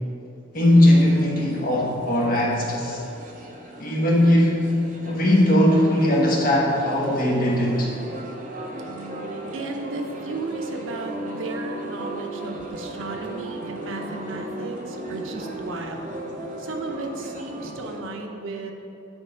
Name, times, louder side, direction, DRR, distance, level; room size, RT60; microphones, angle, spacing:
voice 1, 0.5-3.0 3.8-7.9, left 1 dB, 45° left, -2 dB, 1.1 m, -19 dB
sound 1, 0.5-18.0, right 1 dB, 40° right, 0.7 m, -36 dB
voice 2, 9.5-16.2 16.6-18.7, right 3 dB, 75° right, 3 dB, 0.7 m, -34 dB
9.1 x 3.3 x 4.9 m, 2.8 s
head